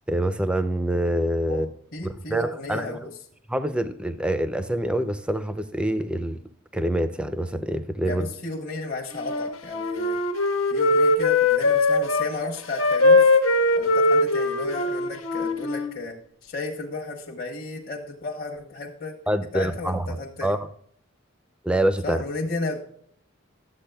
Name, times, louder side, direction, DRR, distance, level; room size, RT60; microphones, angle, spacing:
voice 1, 0.1-1.7 2.0-3.1 3.5-6.4 6.7-8.3 19.3-20.1 20.4-20.6 21.6-22.2, right 1 dB, 5° right, 0.4 m, -25 dB
voice 2, 1.9-3.1 8.0-10.2 10.7-13.4 13.8-19.2 19.5-20.5 22.0-22.8, left 3 dB, 45° left, 1.0 m, -33 dB
Wind instrument woodwind instrument, 9.1-12.3 12.8-15.9, left 2 dB, 90° left, 1.3 m, -21 dB
12.0 x 8.2 x 2.3 m
head